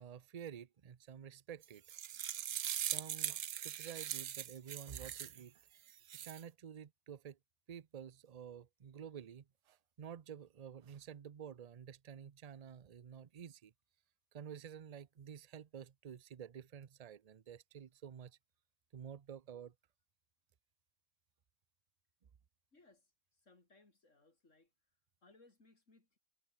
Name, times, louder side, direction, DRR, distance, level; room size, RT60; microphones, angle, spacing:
voice 1, 0.0-1.8 2.8-5.6 6.2-7.4 7.7-13.7 14.3-18.4 18.9-19.7, right 8 dB, 40° right, 0.5 m, -51 dB
sound 1, 1.6-5.4 5.9-6.4, right 10 dB, 70° right, 1.2 m, -41 dB
voice 2, 22.7-23.1 23.4-24.7 25.2-26.2, left 3 dB, 60° left, 4.3 m, -66 dB
omnidirectional pair, 1.5 m